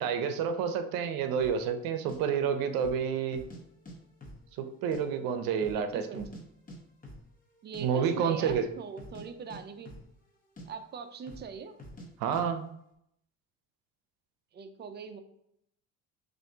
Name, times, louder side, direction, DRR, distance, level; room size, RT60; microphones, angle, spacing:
voice 1, 0.0-3.4 4.6-6.3 7.8-8.7 12.2-12.6, right 7 dB, 75° right, 8 dB, 0.7 m, -29 dB
sound 1, 1.4-1.6 2.1-2.2 2.7-3.0 3.3-5.0 5.3-5.4 5.6-6.4 6.7-6.8 7.0-7.3 7.5-7.8 8.4-8.7 8.9-10.3 10.6-10.7 11.2-11.5 11.8-12.1 12.3-12.4, equal, 25° left, 1.1 m, -46 dB
voice 2, 5.7-6.2 7.6-9.9 10.7-11.7 14.5-15.2, right 6 dB, 30° right, 8 dB, 0.5 m, -42 dB
6.2 x 2.6 x 2.8 m, 0.75 s
cardioid pair, 105°, 35 cm